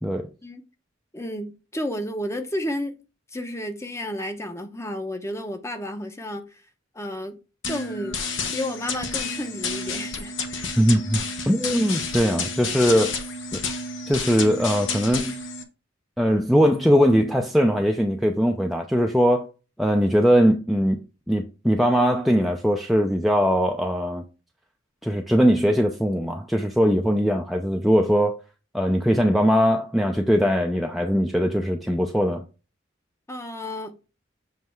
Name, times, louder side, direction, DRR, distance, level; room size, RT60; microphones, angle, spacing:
voice 1, 1.1-3.0 3.3-6.6 6.9-7.4 7.7-8.2 8.5-10.7 33.3-34.0, left 1 dB, 15° left, 0.9 m, -32 dB
sound 1, 7.6-15.6, left 4 dB, 70° left, 1.1 m, -30 dB
voice 2, 10.8-11.2 11.5-13.1 13.5-13.6 14.1-15.4 16.2-19.5 19.8-21.0 21.3-24.2 25.0-28.4 28.7-32.4, equal, ahead, 0.5 m, -20 dB
7.5 x 3.3 x 4.6 m
head